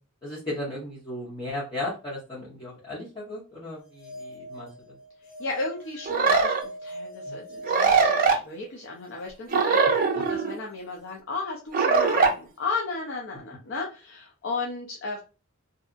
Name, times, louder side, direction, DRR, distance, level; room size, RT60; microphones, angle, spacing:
voice 1, 0.2-5.0 7.2-7.4, left 1 dB, 25° left, -8 dB, 0.9 m, -36 dB
sound 1, 3.8-8.6, right 1 dB, 80° left, 1.1 m, -43 dB
voice 2, 5.4-15.2, left 3 dB, 60° left, -1 dB, 0.5 m, -34 dB
sound 2, 6.1-6.6 7.6-8.4 9.5-10.5 11.7-12.3, right 5 dB, 45° right, 0.5 m, -21 dB
2.7 x 2.4 x 2.4 m, 0.33 s
head